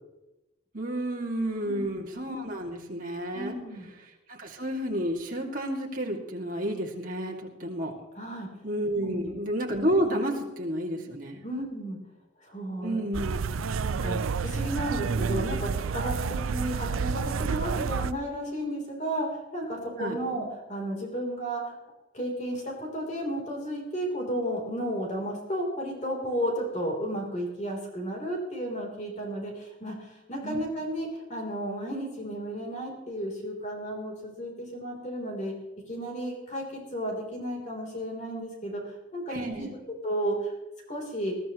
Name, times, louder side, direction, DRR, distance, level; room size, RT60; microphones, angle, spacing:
voice 1, 0.7-3.6 4.3-7.9 8.6-11.4 12.8-13.5 20.0-20.2 30.4-30.6 39.3-39.7, right 1 dB, 40° right, -1 dB, 2.3 m, -30 dB
voice 2, 1.6-2.0 3.3-3.9 8.2-8.5 9.0-9.3 11.4-12.0 12.4-13.0 13.8-21.7 22.1-35.5 35.9-39.8 40.0-40.5 40.9-41.3, right 1 dB, 35° left, -1 dB, 3.7 m, -33 dB
sound 1, 13.1-18.1, right 5 dB, 90° right, 0.5 m, -29 dB
21.5 x 13.5 x 3.1 m, 1.0 s
head